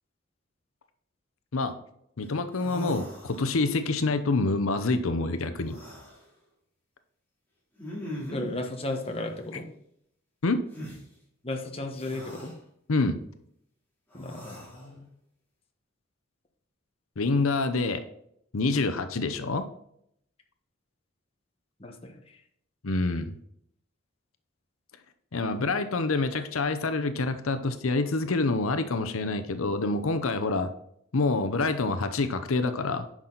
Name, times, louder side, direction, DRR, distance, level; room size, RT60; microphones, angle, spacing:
voice 1, 2.2-5.8 10.4-10.6 12.9-13.2 17.2-18.0 18.5-19.6 22.8-23.4 25.3-30.7 31.1-33.1, left 3 dB, 85° left, 9 dB, 0.7 m, -27 dB
sound 1, 2.2-2.3 2.5-3.8 5.6-6.2 7.8-8.6 10.7-11.0 11.9-12.5 14.1-14.9, equal, 10° left, 3.0 m, -40 dB
voice 2, 8.3-9.7 11.4-12.5 14.1-15.1 21.8-22.4, left 2 dB, 30° left, 3 dB, 1.2 m, -35 dB
9.8 x 6.1 x 3.9 m, 0.71 s
head